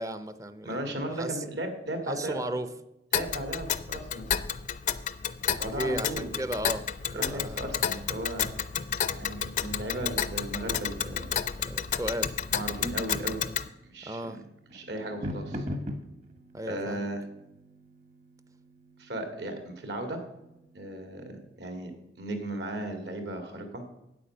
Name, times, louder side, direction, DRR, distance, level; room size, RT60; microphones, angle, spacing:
voice 1, 0.0-0.9 1.2-1.4 2.1-2.7 5.5-6.9 7.1-7.7 11.6-12.3 14.1-14.4 16.5-17.1, right 1 dB, 20° right, 11 dB, 0.5 m, -35 dB
voice 2, 0.6-2.4 3.1-4.3 5.6-6.3 7.1-8.5 9.2-11.2 12.5-13.4 13.9-14.4 14.7-15.7 16.7-17.2 19.0-20.2 20.7-21.9 22.2-23.8, right 1 dB, 70° right, 5 dB, 2.0 m, -36 dB
Tick, 3.1-13.7, left 8 dB, 45° left, 0.4 m, -31 dB
sound 1, 11.4-21.5, left 1 dB, 40° right, 1.1 m, -44 dB
8.8 x 8.4 x 6.5 m, 0.88 s
head